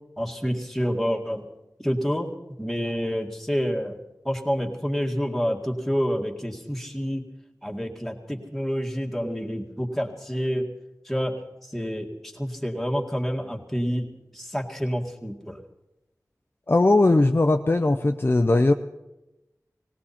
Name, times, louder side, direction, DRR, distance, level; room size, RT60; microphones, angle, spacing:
voice 1, 0.2-1.5 1.8-2.3 2.6-4.0 4.2-7.3 7.6-10.7 11.0-15.6, equal, 5° left, 1 dB, 2.1 m, -28 dB
voice 2, 16.7-18.7, left 2 dB, 35° left, 6 dB, 0.6 m, -19 dB
19.5 x 17.0 x 4.3 m, 0.96 s
wide cardioid pair, 65°, 6 cm